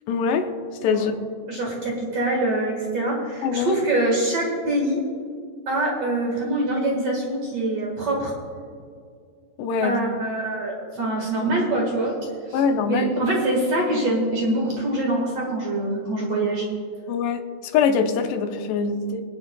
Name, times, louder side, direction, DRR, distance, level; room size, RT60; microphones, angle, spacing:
voice 1, 0.1-0.5 0.8-1.2 3.4-3.8 9.6-10.0 12.5-13.1 17.1-19.2, left 6 dB, 85° left, 6 dB, 2.9 m, -23 dB
voice 2, 1.5-5.0 5.7-8.3 9.8-12.2 12.5-12.6 12.9-16.7, right 1 dB, 50° right, -2 dB, 2.1 m, -24 dB
26.5 x 9.3 x 2.3 m, 2.2 s
omnidirectional pair, 4.7 m